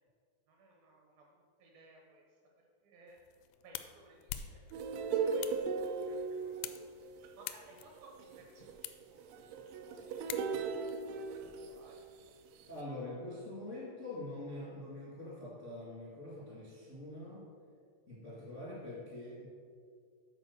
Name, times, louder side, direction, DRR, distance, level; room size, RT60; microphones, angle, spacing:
voice 1, 0.5-2.2 2.6-4.9 5.3-7.1 7.3-11.2 11.7-12.1 18.5-18.7, right 2 dB, 75° right, 0 dB, 2.2 m, -61 dB
sound 1, 3.1-10.9, left 12 dB, 85° left, 2.5 m, -48 dB
sound 2, 4.7-12.0 12.6-12.8, right 5 dB, 90° right, 3.1 m, -37 dB
voice 2, 12.7-17.4 18.1-19.5, left 1 dB, 55° left, -7 dB, 0.7 m, -44 dB
9.6 x 4.3 x 6.7 m, 2.1 s
omnidirectional pair, 5.2 m